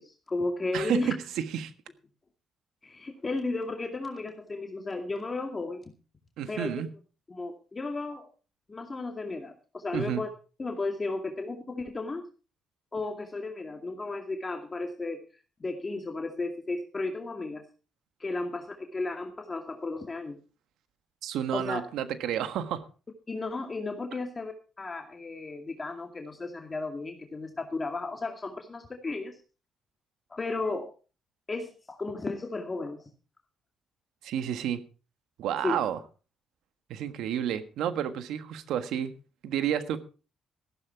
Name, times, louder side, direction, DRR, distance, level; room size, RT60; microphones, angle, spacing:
voice 1, 0.0-1.1 2.8-5.9 6.5-6.7 7.3-8.3 8.7-10.3 10.6-12.2 12.9-15.2 15.6-17.6 18.2-20.4 21.5-21.8 23.3-29.4 30.3-30.9 31.5-33.0 35.6-35.8, left 3 dB, 30° left, 4 dB, 2.3 m, -34 dB
voice 2, 0.7-1.7 6.4-6.9 9.9-10.2 21.2-22.9 34.2-34.8 35.4-36.0 36.9-39.1 39.4-40.0, right 9 dB, 80° right, 10 dB, 1.4 m, -30 dB
14.5 x 12.0 x 4.6 m, 0.35 s
cardioid pair, 85°, 0 cm